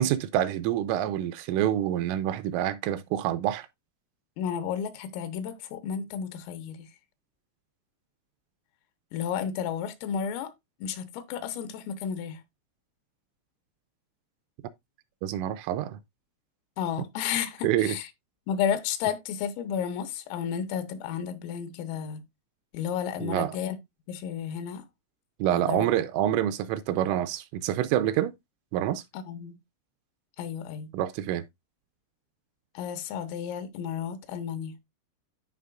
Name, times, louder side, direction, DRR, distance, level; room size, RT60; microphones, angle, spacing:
voice 1, 0.0-3.7 15.2-16.0 17.6-18.0 23.2-23.5 25.4-28.3 28.7-29.0 30.9-31.4, right 12 dB, 85° right, 3.0 m, -27 dB
voice 2, 4.4-6.9 9.1-10.5 10.8-12.4 16.8-18.1 18.5-22.2 22.7-23.8 24.1-24.9 25.5-25.9 29.1-29.6 30.4-30.9 32.7-34.7, left 8 dB, 85° left, 3.6 m, -32 dB
13.5 x 4.7 x 2.4 m
omnidirectional pair, 6.0 m